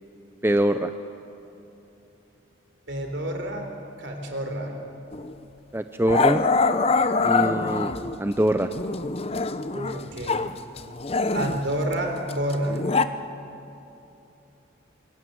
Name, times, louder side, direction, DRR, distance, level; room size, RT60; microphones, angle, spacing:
voice 1, 0.4-0.9 5.7-6.4 7.2-7.9 8.2-8.7, right 1 dB, 10° right, 8 dB, 0.5 m, -23 dB
voice 2, 2.9-3.7 4.0-4.7 9.7-10.5 11.3-12.8, right 1 dB, 60° right, 4 dB, 3.7 m, -29 dB
Growling, 5.1-5.3 6.1-8.2 8.7-10.5 10.8-13.1, left 4 dB, 30° left, 0.7 m, -24 dB
26.5 x 23.0 x 7.8 m, 2.9 s
head